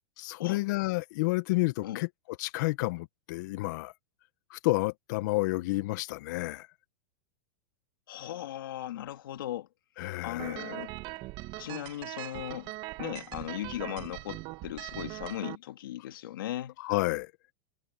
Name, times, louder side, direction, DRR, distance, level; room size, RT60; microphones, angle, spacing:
voice 1, 0.2-2.1 2.4-3.9 4.5-6.7 10.0-10.6 16.8-17.3, left 22 dB, 60° left, 1.3 m, -30 dB
voice 2, 8.1-9.7 10.2-10.9 11.6-12.7 13.0-16.7, left 13 dB, 80° left, 2.6 m, -37 dB
sound 1, 10.4-15.5, right 20 dB, 45° right, 2.0 m, -41 dB
hypercardioid pair, 135°, 11 cm